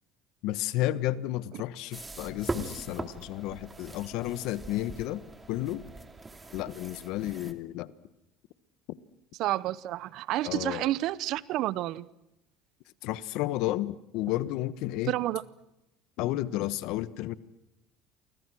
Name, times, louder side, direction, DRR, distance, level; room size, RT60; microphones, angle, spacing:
voice 1, 0.4-5.2 5.5-5.8 6.5-7.9 10.4-10.9 13.0-15.1 16.2-17.4, left 15 dB, 75° left, 1.2 m, -32 dB
sound 1, 1.9-7.5, right 3 dB, 20° right, 2.5 m, -41 dB
voice 2, 9.4-12.1 15.1-15.4, right 15 dB, 65° right, 0.9 m, -30 dB
29.5 x 24.0 x 6.3 m
supercardioid pair, 95°, 0 cm